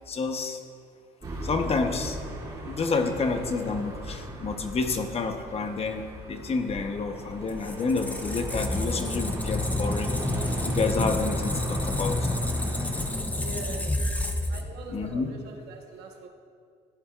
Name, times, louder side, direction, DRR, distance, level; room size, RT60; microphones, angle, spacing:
voice 1, 0.1-0.6 1.4-2.2 2.6-10.1 10.6-12.3 14.9-15.3, left 4 dB, 35° left, 5 dB, 1.0 m, -29 dB
sound 1, 1.2-13.1, right 1 dB, 25° right, 2.7 m, -38 dB
Squeak, 7.4-15.1, left 1 dB, 10° left, 0.7 m, -29 dB
voice 2, 13.3-13.9 14.5-16.3, right 3 dB, 80° right, 2 dB, 1.3 m, -42 dB
16.0 x 9.9 x 2.5 m, 2.3 s
cardioid pair, 110°, 17 cm